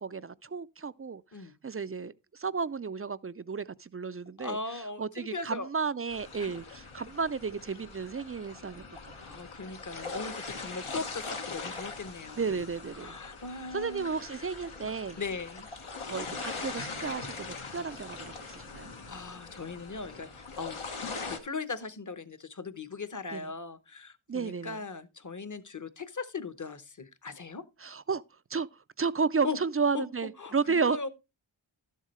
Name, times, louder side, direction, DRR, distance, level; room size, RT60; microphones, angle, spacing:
voice 1, 0.0-1.2 1.6-4.6 5.0-8.8 12.4-13.2 13.7-15.2 16.1-18.9 23.3-23.5 24.3-24.8 27.8-28.2 28.5-28.7 29.0-31.0, right 5 dB, 30° right, 0.4 m, -32 dB
voice 2, 4.4-5.7 6.4-6.5 9.2-12.6 13.0-14.1 15.2-15.7 18.3-18.4 19.1-20.8 21.1-27.6 29.4-29.6 29.9-30.1 30.4-31.1, left 4 dB, 40° left, 0.9 m, -39 dB
sound 1, 6.1-21.4, left 4 dB, 80° left, 1.4 m, -41 dB
12.0 x 7.4 x 3.1 m
wide cardioid pair, 40°, 49 cm